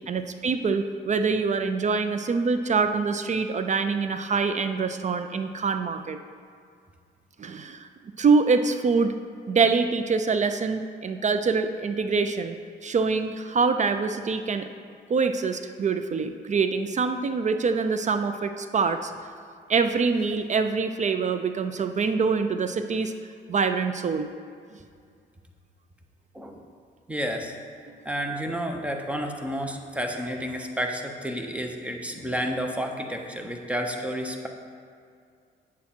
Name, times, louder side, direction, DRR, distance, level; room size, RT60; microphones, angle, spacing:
voice 1, 0.1-6.2 7.4-7.9 8.2-9.1 9.5-12.6 12.8-14.7 15.1-19.1 19.7-23.1 23.5-24.3 27.9-28.0, right 4 dB, 35° right, 9 dB, 0.4 m, -25 dB
voice 2, 27.1-27.6 28.0-34.5, equal, 5° right, 3 dB, 1.0 m, -31 dB
8.6 x 7.0 x 4.4 m, 2.2 s
cardioid pair, 90°, 20 cm